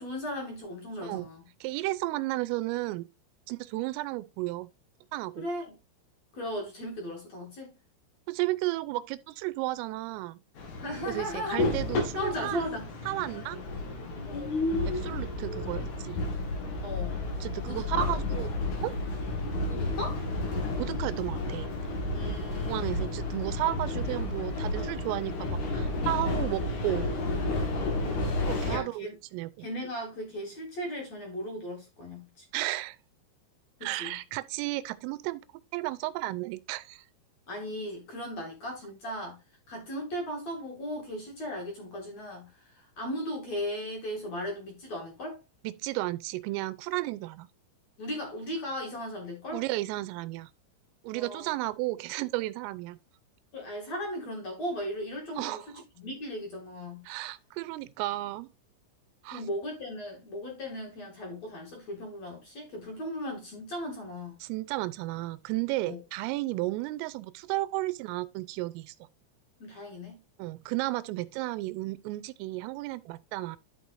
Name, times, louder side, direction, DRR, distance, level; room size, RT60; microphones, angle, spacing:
voice 1, 0.0-1.4 5.4-5.8 6.3-7.7 10.8-11.6 12.2-12.9 14.2-14.5 16.8-17.2 17.6-18.1 19.7-20.2 22.1-23.1 28.7-29.1 29.6-32.4 33.8-34.2 37.5-39.4 39.7-45.4 48.0-49.6 51.1-51.6 53.5-57.0 59.3-64.3 65.8-66.0 69.6-70.2, equal, 40° left, 2.9 m, -37 dB
voice 2, 1.6-3.1 3.5-4.7 5.1-5.5 8.3-10.4 11.1-12.6 13.1-13.6 14.8-16.2 17.4-18.5 18.8-18.9 20.8-21.7 22.7-27.1 28.5-29.7 32.5-33.0 33.8-35.4 35.7-37.0 45.6-47.5 49.5-50.5 51.0-53.0 55.4-55.7 57.1-58.5 59.2-59.4 64.4-68.9 70.4-73.6, right 18 dB, 90° right, 3.3 m, -33 dB
sound 1, 10.6-28.8, left 2 dB, 60° left, 2.1 m, -31 dB
11.5 x 6.3 x 2.6 m
omnidirectional pair, 5.8 m